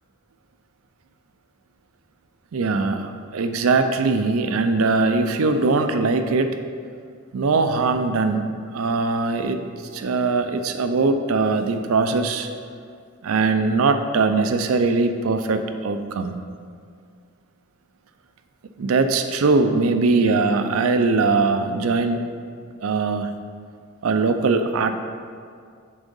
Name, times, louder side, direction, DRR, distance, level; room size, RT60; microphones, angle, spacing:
voice 1, 2.5-6.6 7.3-9.6 9.9-12.5 13.2-16.4 18.8-22.2 22.8-23.3 24.0-25.0, right 3 dB, 85° right, 8 dB, 0.5 m, -21 dB
7.1 x 3.6 x 5.4 m, 2.2 s
head